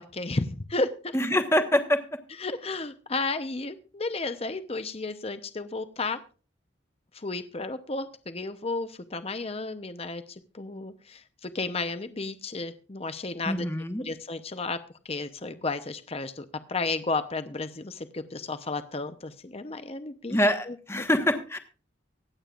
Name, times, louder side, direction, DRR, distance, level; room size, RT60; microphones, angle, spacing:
voice 1, 0.0-1.4 2.4-6.2 7.1-13.7 14.0-14.8 15.0-20.4 20.7-21.0, left 3 dB, 35° left, 10 dB, 0.8 m, -33 dB
voice 2, 1.1-2.0 13.4-14.0 20.3-21.6, left 1 dB, 15° left, 7 dB, 1.2 m, -25 dB
24.5 x 8.7 x 2.5 m, 0.36 s
head